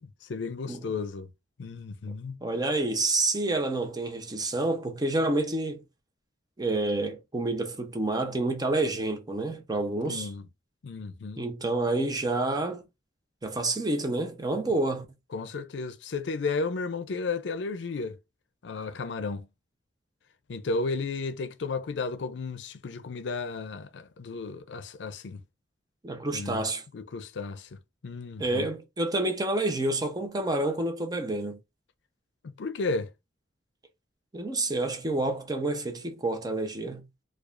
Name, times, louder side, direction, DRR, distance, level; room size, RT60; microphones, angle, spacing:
voice 1, 0.2-1.3 1.6-2.4 10.1-10.4 10.8-11.4 15.3-18.2 18.6-19.5 20.5-25.4 26.3-26.7 26.9-27.8 28.0-28.7 32.6-33.1, left 4 dB, 80° left, 0.5 m, -33 dB
voice 2, 2.4-5.8 6.6-10.3 11.4-12.9 13.4-15.1 26.0-26.8 28.4-31.6 34.3-37.0, right 2 dB, 20° right, 0.6 m, -28 dB
4.6 x 2.3 x 2.4 m
head